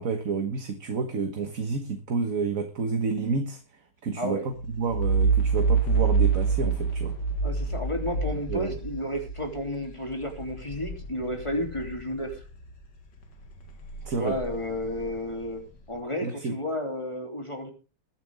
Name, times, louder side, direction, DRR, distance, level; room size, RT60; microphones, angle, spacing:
voice 1, 0.0-3.6 4.0-7.2 8.5-8.8 14.0-14.4 16.2-16.6, right 4 dB, 50° right, 1.7 m, -30 dB
sound 1, 4.5-12.8 13.2-15.8, right 5 dB, 75° left, 2.5 m, -28 dB
voice 2, 7.4-12.4 14.1-15.6 15.9-17.7, left 1 dB, 15° left, 3.3 m, -32 dB
21.5 x 9.4 x 3.6 m
omnidirectional pair, 1.9 m